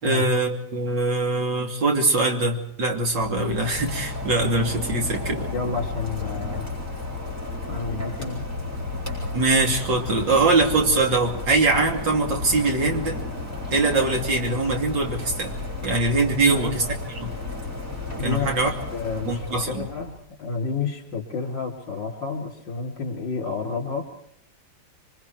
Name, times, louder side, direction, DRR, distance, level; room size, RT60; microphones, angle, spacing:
voice 1, 0.0-5.5 9.3-13.2 13.7-15.5 15.8-17.3 18.2-18.7 19.2-19.9, right 3 dB, 70° right, 2 dB, 3.4 m, -22 dB
Rain, 3.0-20.2, left 3 dB, 10° right, 8.1 m, -33 dB
voice 2, 5.5-6.7 7.7-8.4 16.5-16.9 18.2-18.5 18.9-24.1, left 4 dB, 70° left, 2 dB, 4.2 m, -30 dB
26.5 x 24.0 x 4.7 m, 0.69 s
omnidirectional pair, 2.1 m